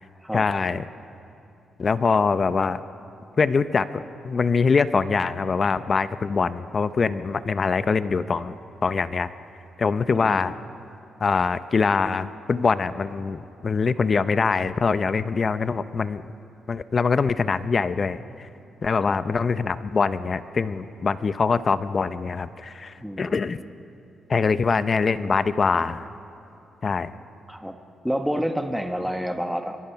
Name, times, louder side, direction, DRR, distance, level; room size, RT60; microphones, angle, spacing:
voice 1, 0.3-0.8 1.8-2.8 3.4-8.5 8.8-9.3 9.8-10.5 11.2-16.2 16.7-18.5 18.8-23.6 24.3-26.1 26.8-27.1, left 5 dB, 40° left, 14 dB, 0.6 m, -23 dB
voice 2, 10.1-10.4 19.0-19.2 23.0-23.4 27.5-27.8 28.0-29.8, equal, ahead, 6 dB, 1.1 m, -29 dB
25.0 x 22.5 x 5.7 m, 2.7 s
cardioid pair, 105°, 0 cm